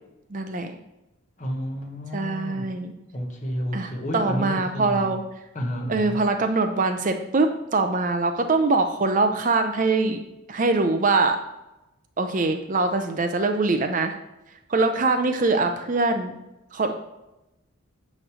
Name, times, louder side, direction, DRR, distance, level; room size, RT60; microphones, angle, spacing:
voice 1, 0.3-0.7 2.1-2.9 3.7-5.2 5.9-10.2 10.5-11.4 12.2-14.2 14.7-16.3 16.7-16.9, right 3 dB, 35° right, 6 dB, 0.5 m, -23 dB
voice 2, 1.4-2.7 3.1-5.1 5.5-6.2, equal, 35° left, 2 dB, 1.1 m, -31 dB
8.7 x 3.2 x 6.1 m, 0.95 s
head